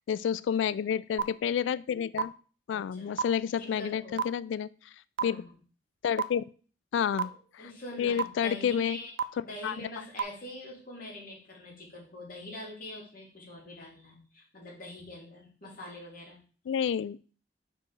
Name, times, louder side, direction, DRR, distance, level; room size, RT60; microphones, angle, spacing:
voice 1, 0.1-2.3 2.7-4.7 5.2-5.4 6.0-6.4 6.9-7.3 8.0-9.0 9.6-9.9 16.7-17.2, left 8 dB, 90° left, 18 dB, 0.3 m, -29 dB
sound 1, 1.2-1.3 2.2-2.3 3.2-3.3 4.2-4.3 5.2-5.3 6.2-6.3 7.2-7.3 8.2-8.3 9.2-9.3 10.2-10.3, right 7 dB, 75° right, 0.4 m, -26 dB
voice 2, 2.7-3.2 3.6-4.2 5.2-5.5 7.1-9.1 9.4-16.4, left 1 dB, 50° left, -3 dB, 2.7 m, -44 dB
4.9 x 4.6 x 5.2 m, 0.40 s
head